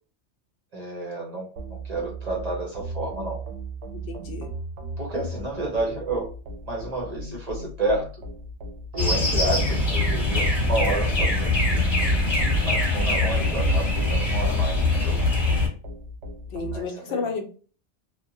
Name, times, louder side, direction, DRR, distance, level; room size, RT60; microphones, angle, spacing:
voice 1, 0.7-3.4 5.0-6.3 6.7-8.1 8.9-11.8 12.6-15.2 16.7-17.3, right 2 dB, 45° right, -2 dB, 0.6 m, -30 dB
sound 1, 1.6-16.8, right 2 dB, 85° right, 0.9 m, -36 dB
voice 2, 4.1-4.5 16.5-17.4, left 4 dB, 70° left, 2 dB, 0.8 m, -31 dB
sound 2, 9.0-15.7, left 2 dB, 25° left, 0.9 m, -22 dB
2.8 x 2.1 x 2.6 m, 0.39 s
omnidirectional pair, 1.2 m